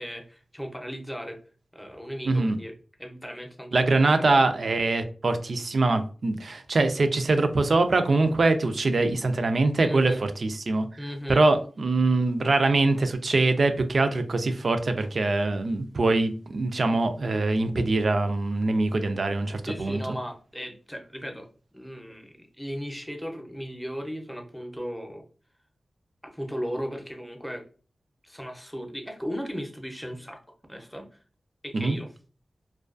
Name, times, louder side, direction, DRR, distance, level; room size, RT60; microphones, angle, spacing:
voice 1, 0.0-1.4 1.7-2.7 3.0-3.7 9.8-10.3 11.0-11.4 19.7-21.5 21.7-25.2 26.2-27.6 28.2-30.4 30.7-31.1 31.6-32.1, equal, 5° left, 4 dB, 0.6 m, -36 dB
voice 2, 2.2-2.6 3.7-10.9 11.3-20.0 31.7-32.0, right 3 dB, 65° right, 8 dB, 0.4 m, -23 dB
2.3 x 2.3 x 2.4 m, 0.38 s
cardioid pair, 55°, 0 cm